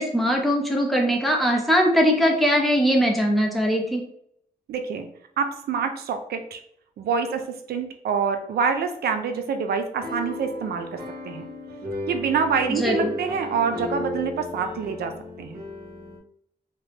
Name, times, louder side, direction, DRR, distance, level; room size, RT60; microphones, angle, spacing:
voice 1, 0.0-4.0 12.7-13.1, equal, ahead, 0 dB, 0.7 m, -21 dB
voice 2, 4.7-5.1 5.4-6.6 7.0-7.4 7.7-11.0 11.3-11.5 12.1-15.1 15.4-15.6, right 6 dB, 85° right, 7 dB, 0.4 m, -26 dB
sound 1, 9.9-16.2, left 1 dB, 65° right, 1.1 m, -34 dB
2.9 x 2.1 x 3.3 m, 0.70 s
cardioid pair, 95°, 16 cm